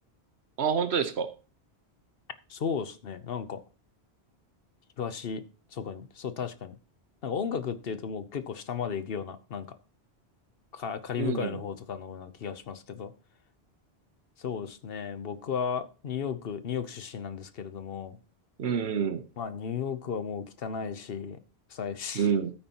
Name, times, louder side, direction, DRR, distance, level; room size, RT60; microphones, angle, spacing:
voice 1, 0.6-1.3 11.2-11.6 18.6-19.2 22.1-22.5, right 7 dB, 80° right, 11 dB, 1.2 m, -27 dB
voice 2, 2.5-3.6 5.0-5.4 5.7-6.8 7.2-9.8 10.7-13.1 14.4-18.2 19.4-21.4 21.7-22.3, left 7 dB, 65° left, 12 dB, 1.0 m, -34 dB
13.0 x 8.9 x 2.9 m, 0.34 s
omnidirectional pair, 1.1 m